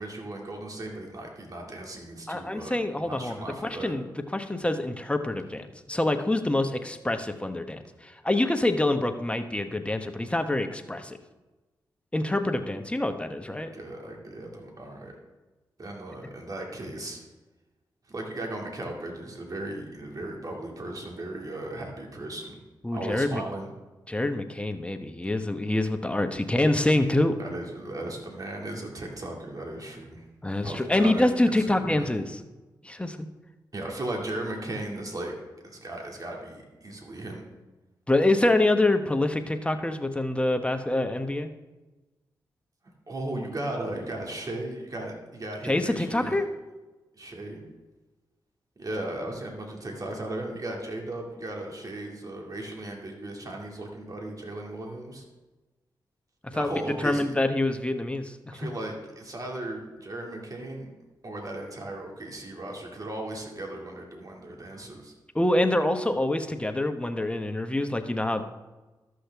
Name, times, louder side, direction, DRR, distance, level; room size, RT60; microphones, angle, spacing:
voice 1, 0.0-3.9 13.6-15.1 15.8-17.2 18.1-22.6 22.9-23.7 27.4-30.2 30.6-32.1 33.7-35.3 35.6-37.4 43.1-46.4 47.2-47.6 48.8-55.2 56.5-57.3 58.5-60.9 61.2-65.1, right 1 dB, 45° right, 0 dB, 2.3 m, -36 dB
voice 2, 2.3-4.1 4.3-11.2 12.1-13.7 22.8-23.4 24.1-27.4 30.4-32.4 32.8-33.3 38.1-41.5 45.6-46.4 56.5-58.7 65.3-68.4, left 1 dB, 15° left, 7 dB, 1.0 m, -26 dB
13.0 x 6.4 x 3.5 m, 1.1 s
supercardioid pair, 45°, 8 cm